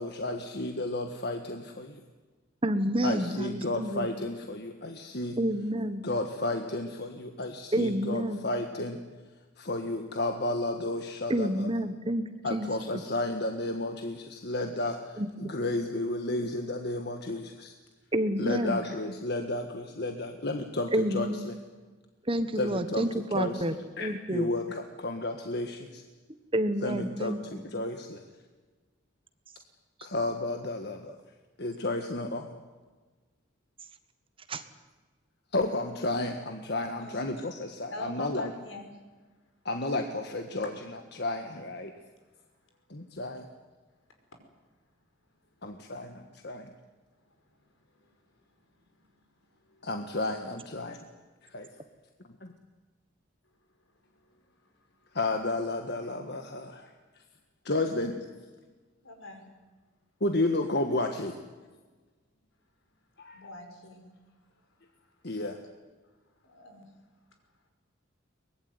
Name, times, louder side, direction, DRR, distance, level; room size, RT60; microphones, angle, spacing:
voice 1, 0.0-2.0 3.0-5.4 6.0-9.0 9.6-11.7 12.4-17.7 18.4-21.5 22.6-23.1 23.3-23.6 24.0-26.0 26.8-28.2 30.0-31.2 31.6-32.5 35.5-38.5 39.6-41.9 43.2-43.4 45.6-46.7 49.8-51.0 51.4-51.7 55.1-56.9 57.6-58.3 60.2-61.4 63.2-63.4 65.2-65.6, left 2 dB, 55° left, 5 dB, 1.6 m, -32 dB
voice 2, 2.6-4.1 5.4-6.0 7.7-8.5 11.3-12.2 12.5-12.7 15.2-15.5 18.1-18.8 20.9-21.5 22.3-24.5 26.5-27.6 34.5-34.6, right 1 dB, 25° right, 10 dB, 1.3 m, -29 dB
voice 3, 37.9-39.0 48.9-49.0 49.7-49.9 51.6-51.8 54.2-54.4 59.0-59.5 63.3-64.1 66.4-66.9, left 1 dB, 85° left, 5 dB, 5.4 m, -44 dB
23.5 x 20.5 x 9.6 m, 1.3 s
head